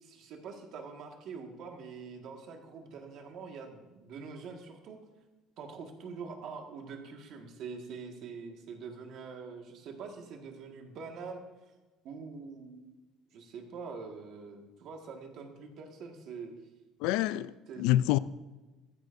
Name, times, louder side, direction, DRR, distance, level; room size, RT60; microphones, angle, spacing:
voice 1, 0.0-5.0 5.6-11.4 12.0-12.9 13.3-16.5 17.7-17.9, right 5 dB, 50° right, 1.7 m, -44 dB
voice 2, 17.0-18.2, left 15 dB, 80° left, 0.3 m, -27 dB
14.5 x 14.5 x 2.6 m
cardioid pair, 175°, 0 cm